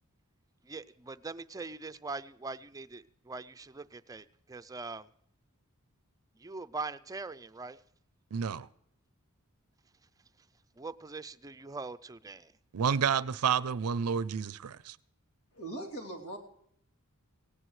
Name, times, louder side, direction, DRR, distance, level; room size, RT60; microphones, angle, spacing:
voice 1, 0.7-5.1 6.4-7.8 10.8-12.5, right 3 dB, 15° right, 0.4 m, -42 dB
voice 2, 8.3-8.7 12.7-15.0, right 7 dB, 85° right, 0.5 m, -30 dB
voice 3, 15.5-16.4, right 1 dB, 90° left, 3.0 m, -40 dB
18.5 x 17.0 x 3.2 m
head